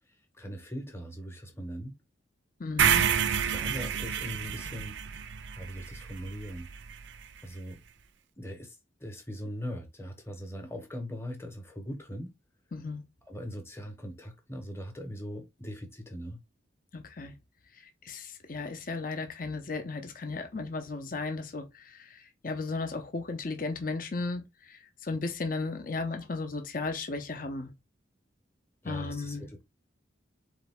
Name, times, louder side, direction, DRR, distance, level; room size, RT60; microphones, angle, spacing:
voice 1, 0.3-1.9 3.1-3.2 3.5-5.0 5.5-6.7 7.4-7.8 8.4-12.3 13.3-16.4 28.8-29.6, equal, 10° left, 1.0 m, -40 dB
voice 2, 2.6-3.1 12.7-13.0 16.9-17.3 18.0-24.4 24.7-27.7 28.8-29.5, left 3 dB, 45° left, 0.7 m, -35 dB
sound 1, 2.8-6.9, right 8 dB, 65° right, 0.4 m, -29 dB
4.1 x 3.4 x 3.5 m
head